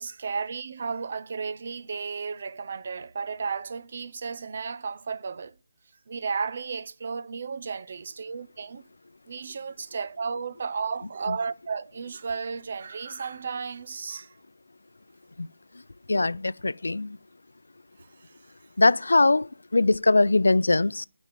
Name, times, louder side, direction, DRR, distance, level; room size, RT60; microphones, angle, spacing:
voice 1, 0.0-5.5 6.1-8.9 9.3-14.3 18.0-18.4, right 5 dB, 35° right, 0.5 m, -33 dB
voice 2, 16.1-17.2 18.8-21.1, left 2 dB, 85° left, 0.4 m, -21 dB
11.0 x 5.3 x 7.4 m
figure-of-eight pair, 175°, 0 cm